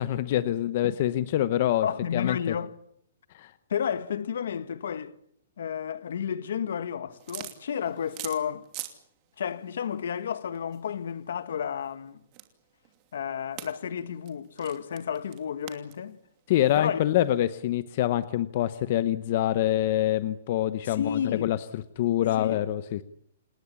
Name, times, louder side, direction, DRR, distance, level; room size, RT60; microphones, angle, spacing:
voice 1, 0.0-1.9 2.1-2.5 3.3-3.5 16.5-23.0, left 13 dB, 35° left, 0.9 m, -26 dB
voice 2, 1.8-2.7 3.7-5.2 5.6-8.7 9.4-12.2 13.1-16.2 16.8-17.0 20.8-21.5 22.2-22.6, left 8 dB, 65° left, 1.8 m, -32 dB
sound 1, 7.1-9.0 9.3-17.5, right 15 dB, 25° right, 2.7 m, -45 dB
28.0 x 19.5 x 8.6 m
hypercardioid pair, 180°, 0 cm